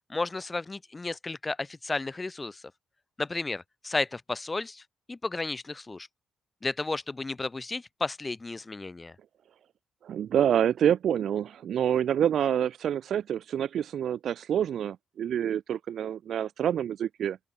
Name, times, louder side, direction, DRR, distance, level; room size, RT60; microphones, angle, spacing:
voice 1, 0.1-2.6 3.2-4.8 5.1-6.1 6.6-9.2, left 3 dB, 25° left, 3.8 m, -33 dB
voice 2, 10.0-17.4, right 9 dB, 70° right, 0.5 m, -27 dB
open air
cardioid pair, 90°, 0 cm